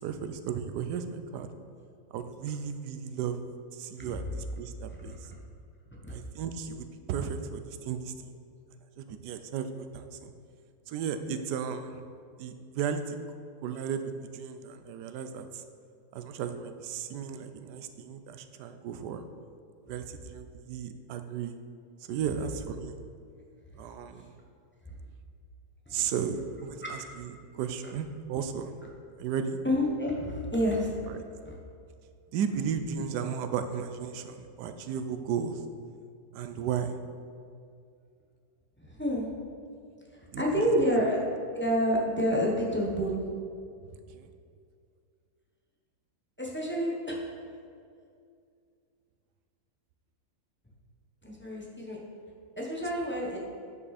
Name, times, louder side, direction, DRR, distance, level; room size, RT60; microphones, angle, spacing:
voice 1, 0.0-1.5 2.1-3.4 3.7-5.2 6.1-8.1 9.0-10.3 10.9-12.0 12.4-13.2 13.6-15.6 16.1-19.2 19.9-21.5 22.1-22.9 23.8-24.3 25.9-26.8 27.2-27.3 27.5-28.7 29.2-29.6 32.3-35.6 36.3-37.0 40.3-40.4 44.1-44.3, right 7 dB, 85° right, 9 dB, 1.2 m, -34 dB
voice 2, 29.6-30.9 31.4-31.6 33.1-33.2 38.8-39.3 40.2-41.2 41.5-43.1 46.4-47.4 51.2-52.0 52.6-53.4, equal, 10° left, -3 dB, 0.9 m, -29 dB
9.5 x 5.4 x 4.1 m, 2.3 s
omnidirectional pair, 1.7 m